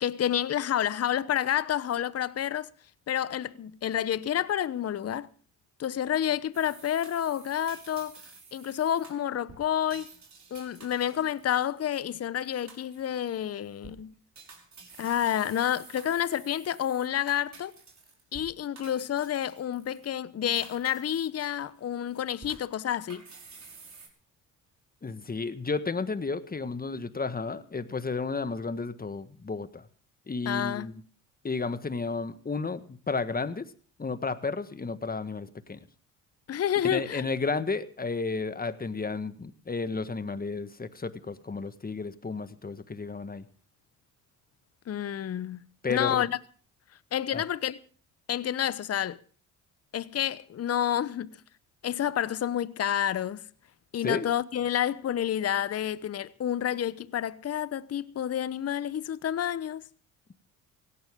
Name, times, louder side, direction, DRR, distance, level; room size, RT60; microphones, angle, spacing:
voice 1, 0.0-2.7 3.1-5.3 5.8-8.2 8.5-10.1 10.5-14.1 15.0-17.7 18.3-23.2 30.5-30.9 36.5-37.3 44.9-45.6 45.9-46.4 47.1-47.8 48.3-49.2 49.9-51.4 51.8-53.4 53.9-59.8, left 10 dB, 40° left, 0.9 m, -29 dB
sound 1, 6.5-12.1 12.4-13.2 13.7-14.0 14.4-18.5 18.8-20.1 20.6-21.8 22.1-24.1, right 4 dB, 40° right, 6.0 m, -51 dB
voice 2, 25.0-29.8 30.3-30.9 31.4-33.7 34.0-35.8 36.8-43.4 45.8-46.2 47.3-47.4 54.0-54.3, left 4 dB, 20° left, 1.6 m, -32 dB
17.0 x 17.0 x 3.7 m
hypercardioid pair, 60°, 40 cm